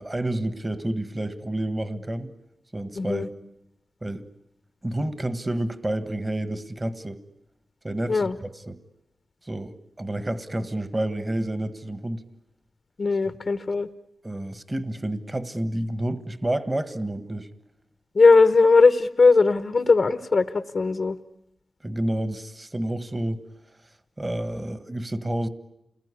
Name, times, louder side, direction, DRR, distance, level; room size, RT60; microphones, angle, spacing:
voice 1, 0.0-2.3 2.7-3.3 4.0-4.2 4.8-7.2 7.8-8.8 9.4-12.2 13.3-13.4 14.2-17.5 21.8-23.4 24.2-25.5, right 1 dB, 25° right, 1.5 m, -29 dB
voice 2, 3.0-3.3 8.1-8.4 13.0-13.9 18.1-21.2, left 4 dB, 55° left, 1.0 m, -19 dB
28.5 x 20.5 x 9.8 m
cardioid pair, 70°, 0 cm